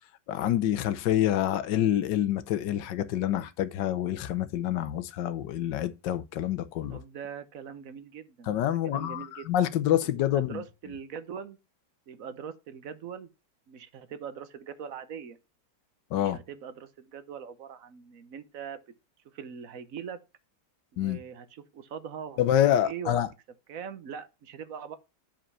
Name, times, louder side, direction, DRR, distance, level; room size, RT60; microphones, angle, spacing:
voice 1, 0.3-7.0 8.5-10.6 16.1-16.4 21.0-21.2 22.4-23.3, left 11 dB, 85° left, 1.4 m, -27 dB
voice 2, 6.9-8.5 8.8-9.5 10.3-11.6 12.1-13.3 13.7-15.4 16.1-18.8 19.3-20.2 20.9-22.4 22.8-23.2 23.7-25.0, right 7 dB, 55° right, 1.2 m, -41 dB
8.9 x 5.2 x 5.5 m
omnidirectional pair, 1.9 m